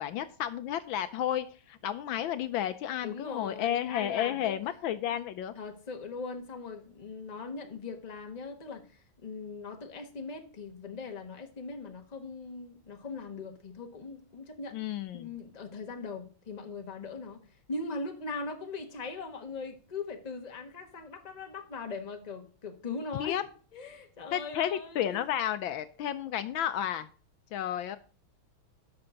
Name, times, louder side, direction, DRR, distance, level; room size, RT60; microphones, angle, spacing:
voice 1, 0.0-5.5 14.7-15.3 23.2-23.4 24.3-27.1 27.5-28.0, left 11 dB, 75° left, 1.3 m, -32 dB
voice 2, 3.0-4.6 5.5-14.8 15.1-17.4 17.7-23.5 23.7-25.2, left 4 dB, 25° left, 1.2 m, -40 dB
11.5 x 6.7 x 3.9 m
omnidirectional pair, 2.3 m